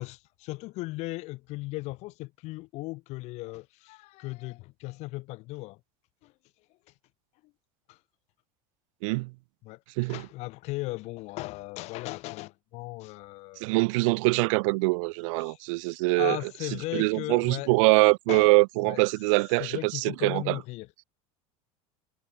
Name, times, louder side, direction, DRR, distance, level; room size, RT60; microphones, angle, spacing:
voice 1, 0.0-5.8 6.2-6.3 7.4-7.5 7.9-8.0 9.6-13.7 15.3-15.6 15.9-17.7 18.3-18.5 18.9-19.0 19.6-20.9, left 21 dB, 40° left, 0.4 m, -37 dB
voice 2, 9.0-9.3 10.0-10.2 13.6-16.4 16.9-20.6, right 27 dB, 75° right, 0.5 m, -24 dB
cardioid pair, 160°, 17 cm